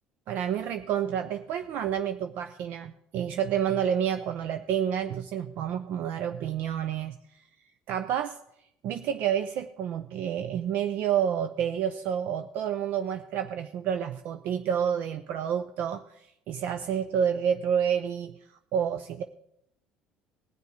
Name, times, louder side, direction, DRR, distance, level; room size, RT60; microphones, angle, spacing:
voice 1, 0.3-7.4 7.9-8.4 8.8-16.2 16.5-18.4 18.7-19.2, right 9 dB, 65° right, 8 dB, 0.6 m, -29 dB
19.5 x 6.7 x 4.9 m, 0.76 s
supercardioid pair, 90°, 3 cm